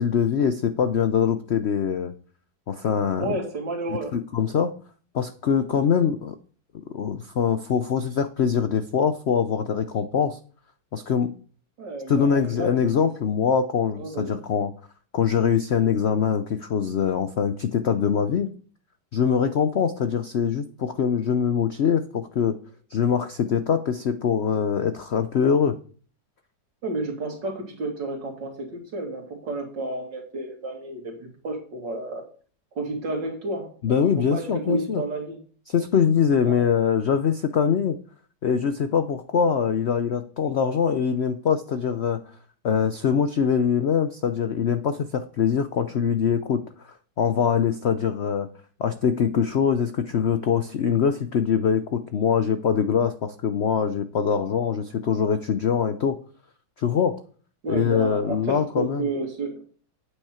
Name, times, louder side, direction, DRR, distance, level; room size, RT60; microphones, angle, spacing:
voice 1, 0.0-2.1 2.7-3.3 4.1-4.7 5.1-6.3 6.9-10.4 10.9-11.3 12.1-14.7 15.1-18.5 19.1-22.6 22.9-25.8 33.8-35.0 35.7-38.0 38.4-42.2 42.6-48.5 48.8-56.2 56.8-57.2 57.7-59.0, left 7 dB, 80° left, 10 dB, 0.5 m, -23 dB
voice 2, 3.2-4.1 11.8-12.7 13.0-13.1 14.0-14.4 26.8-32.3 32.7-35.4 36.4-36.6 57.6-59.6, right 2 dB, 70° right, 2 dB, 2.9 m, -31 dB
9.0 x 8.1 x 4.3 m, 0.42 s
omnidirectional pair, 2.0 m